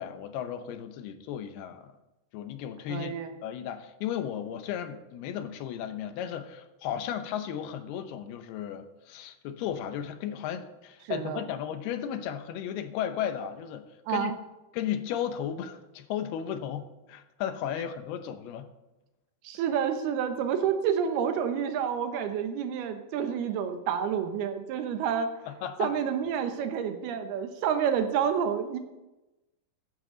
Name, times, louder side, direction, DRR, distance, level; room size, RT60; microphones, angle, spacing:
voice 1, 0.0-1.9 2.3-3.1 3.4-14.3 14.7-18.7 25.5-25.9, left 9 dB, 90° left, 9 dB, 2.9 m, -35 dB
voice 2, 2.9-3.3 11.1-11.4 14.1-14.3 19.4-25.3 25.8-28.8, right 8 dB, 85° right, 7 dB, 3.1 m, -29 dB
14.5 x 11.0 x 4.0 m, 1.0 s
omnidirectional pair, 4.4 m